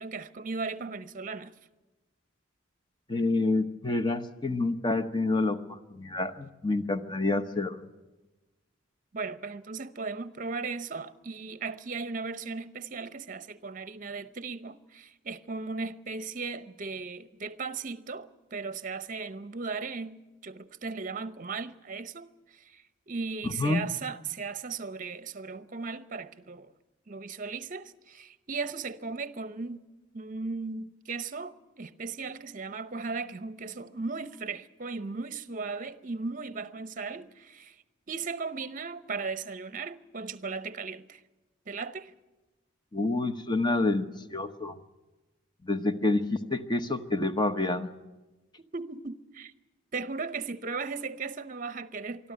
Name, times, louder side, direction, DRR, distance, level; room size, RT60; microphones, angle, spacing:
voice 1, 0.0-1.5 9.1-26.7 27.1-29.8 30.1-41.2 41.7-42.1 48.6-49.5 49.9-52.3, right 4 dB, 40° right, 0.8 m, -37 dB
voice 2, 3.1-7.8 23.4-23.8 42.9-44.8 45.6-47.9, left 2 dB, 20° left, 0.9 m, -28 dB
24.0 x 13.0 x 9.4 m
head